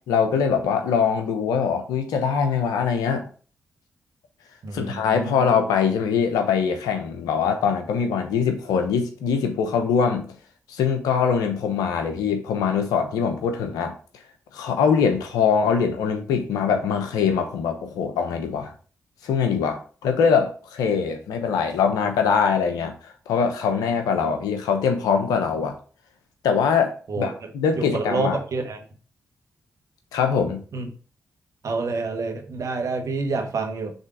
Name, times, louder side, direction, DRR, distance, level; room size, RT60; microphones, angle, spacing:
voice 1, 0.0-3.3 4.7-10.3 10.7-13.9 14.5-18.7 19.2-25.8 26.4-28.4 30.1-30.6, left 6 dB, 85° left, 6 dB, 0.9 m, -23 dB
voice 2, 4.6-5.5 27.1-27.3 27.8-28.8 30.7-30.9 31.6-33.9, right 3 dB, 60° right, 4 dB, 1.3 m, -28 dB
5.5 x 3.6 x 4.8 m, 0.39 s
supercardioid pair, 45°, 6 cm